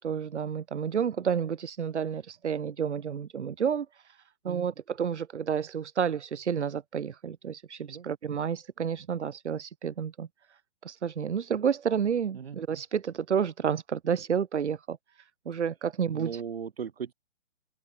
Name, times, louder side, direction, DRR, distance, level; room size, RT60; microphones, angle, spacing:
voice 1, 0.0-4.2 4.4-4.7 5.0-10.3 10.8-15.0 15.4-16.3, right 7 dB, 80° right, 1.6 m, -30 dB
voice 2, 16.1-17.1, right 7 dB, 55° right, 5.9 m, -37 dB
hypercardioid pair, 175°, 34 cm